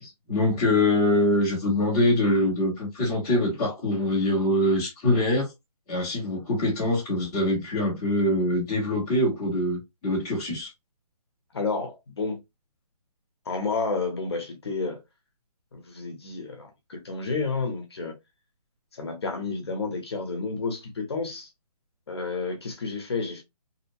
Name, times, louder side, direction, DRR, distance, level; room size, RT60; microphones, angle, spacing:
voice 1, 0.0-5.5 5.9-10.7, left 1 dB, 10° left, 0.7 m, -24 dB
voice 2, 11.5-12.4 13.5-15.0 15.7-18.1 18.9-21.5 22.1-23.4, left 4 dB, 40° left, 0.8 m, -30 dB
2.7 x 2.1 x 2.6 m
hypercardioid pair, 175°, 20 cm